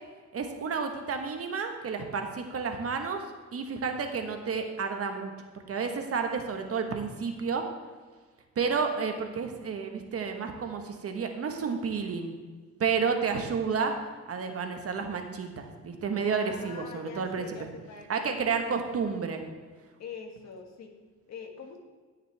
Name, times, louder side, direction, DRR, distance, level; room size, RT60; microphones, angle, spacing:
voice 1, 0.3-3.2 3.5-5.3 5.7-7.6 8.6-12.3 12.8-14.0 14.3-17.5 18.1-19.4, right 5 dB, 50° right, 5 dB, 1.3 m, -31 dB
voice 2, 16.3-18.8 20.0-21.0 21.3-21.8, left 5 dB, 60° left, 3 dB, 1.7 m, -44 dB
16.5 x 6.6 x 3.4 m, 1.5 s
cardioid pair, 90°, 30 cm